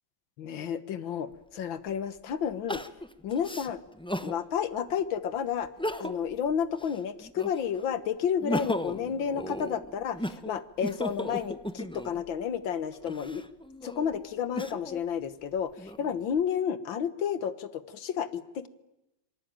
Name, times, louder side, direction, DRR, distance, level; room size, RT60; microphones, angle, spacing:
voice 1, 0.4-2.8 3.2-3.8 4.2-5.7 6.0-13.4 13.8-18.7, left 8 dB, 85° left, 14 dB, 2.0 m, -31 dB
Crying sobbing, 1.3-1.4 2.7-4.4 4.9-5.0 5.6-6.3 6.7-7.8 8.2-12.2 12.9-15.0 15.6-16.4, equal, 10° left, 0.3 m, -36 dB
26.0 x 24.0 x 9.0 m, 0.93 s
omnidirectional pair, 2.1 m